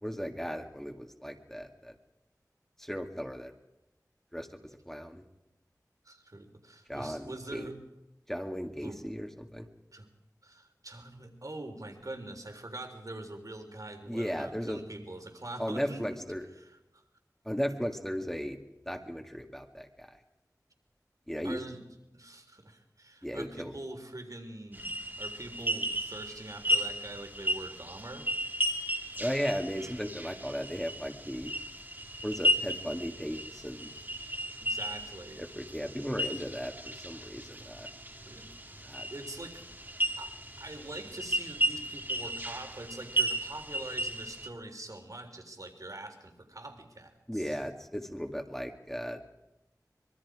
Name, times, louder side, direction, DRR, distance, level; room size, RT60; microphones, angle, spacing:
voice 1, 0.0-2.0 2.8-3.5 4.3-4.6 4.9-5.2 6.9-7.7 8.3-9.7 14.1-14.8 15.6-16.5 17.4-18.6 18.9-20.1 21.3-21.6 23.2-23.7 29.2-31.5 32.2-33.9 35.4-37.9 38.8-39.1 47.3-49.2, equal, 5° left, 4 dB, 2.0 m, -36 dB
voice 2, 6.0-7.8 8.8-9.0 9.9-10.1 10.4-16.1 16.6-17.0 21.4-21.8 22.1-28.3 34.6-35.4 38.3-38.8 39.1-39.7 40.2-47.6, right 2 dB, 60° right, 4 dB, 3.7 m, -44 dB
sound 1, 24.7-44.5, equal, 30° right, 1.9 m, -34 dB
25.0 x 22.5 x 4.9 m, 0.91 s
wide cardioid pair, 45°, 7 cm